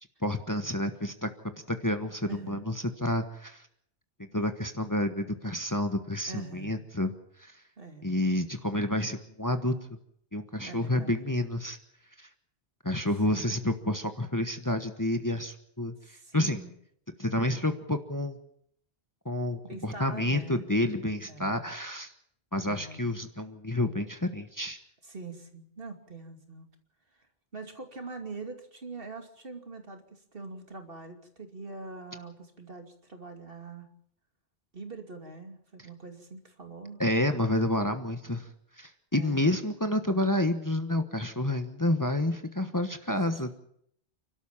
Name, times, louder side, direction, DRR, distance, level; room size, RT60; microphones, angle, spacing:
voice 1, 0.2-3.6 4.3-7.1 7.4-7.5 8.0-9.8 10.3-11.8 12.2-12.3 12.8-16.6 17.2-18.4 19.2-22.1 22.5-24.8 37.0-38.5 38.8-43.5, left 1 dB, 20° left, 7 dB, 1.3 m, -29 dB
voice 2, 2.3-2.6 6.3-6.9 7.8-8.2 10.6-11.3 13.4-13.5 16.0-16.7 19.6-20.7 21.3-21.6 22.6-23.1 25.0-26.7 27.5-33.9 34.7-37.0 39.1-39.4 43.1-43.4, right 3 dB, 60° right, 4 dB, 2.8 m, -43 dB
29.5 x 13.0 x 7.3 m, 0.69 s
omnidirectional pair, 1.1 m